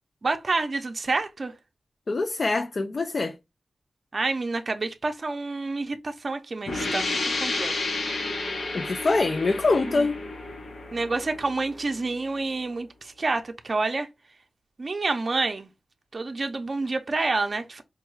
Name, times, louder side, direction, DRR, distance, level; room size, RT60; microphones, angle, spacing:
voice 1, 0.2-1.5 4.1-7.8 9.9-10.1 10.9-14.1 14.8-15.7 16.1-17.8, right 3 dB, 45° right, 0.5 m, -28 dB
voice 2, 2.1-3.4 8.7-10.2, left 3 dB, 50° left, 0.3 m, -24 dB
sound 1, 6.7-12.1, left 2 dB, 90° left, 1.0 m, -31 dB
4.4 x 2.3 x 3.1 m
wide cardioid pair, 95°, 0 cm